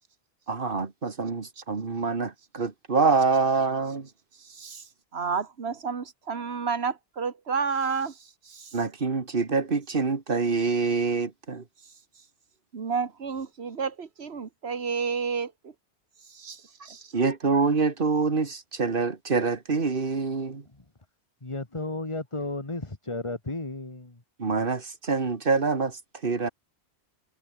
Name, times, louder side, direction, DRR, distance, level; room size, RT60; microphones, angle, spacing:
voice 1, 0.5-4.1 8.7-11.6 17.1-20.6 24.4-26.5, right 4 dB, 55° right, 2.1 m, -26 dB
voice 2, 4.4-4.8 5.1-8.7 12.7-15.7 16.3-17.1, right 5 dB, 70° right, 1.8 m, -31 dB
voice 3, 21.4-24.2, left 2 dB, 25° left, 2.0 m, -34 dB
omnidirectional pair, 1.1 m